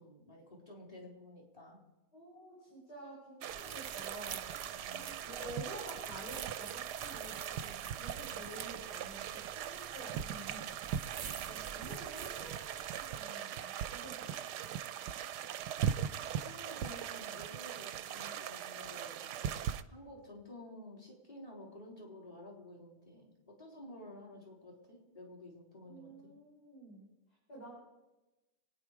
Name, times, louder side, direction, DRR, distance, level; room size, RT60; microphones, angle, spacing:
voice 1, 0.0-1.8 4.7-5.0 8.0-8.5 11.2-11.5 16.3-19.5 19.9-26.3, left 1 dB, 20° left, -2 dB, 4.3 m, -52 dB
voice 2, 2.1-4.6 4.9-11.2 11.5-14.4 25.9-27.1 27.5-27.7, right 1 dB, 80° left, -5 dB, 5.4 m, -50 dB
sound 1, 3.4-19.8, right 9 dB, 90° right, 1.3 m, -40 dB
sound 2, 3.5-13.3, right 7 dB, 70° right, 0.4 m, -49 dB
25.5 x 9.8 x 4.9 m, 1.1 s
omnidirectional pair, 1.7 m